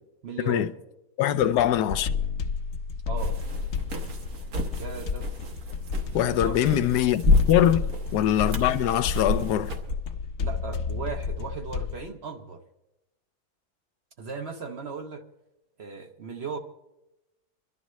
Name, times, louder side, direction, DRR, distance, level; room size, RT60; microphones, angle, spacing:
voice 1, 0.2-0.7 3.1-3.4 4.7-5.6 6.1-6.7 10.4-12.6 14.2-15.2 15.8-16.6, right 5 dB, 50° right, 0.9 m, -37 dB
voice 2, 1.2-2.1 6.1-9.7, left 11 dB, 85° left, 1.2 m, -23 dB
sound 1, 1.4-12.1, left 5 dB, 60° left, 1.0 m, -32 dB
sound 2, 3.2-9.9, left 2 dB, 65° right, 1.6 m, -30 dB
25.5 x 11.5 x 3.1 m
omnidirectional pair, 1.7 m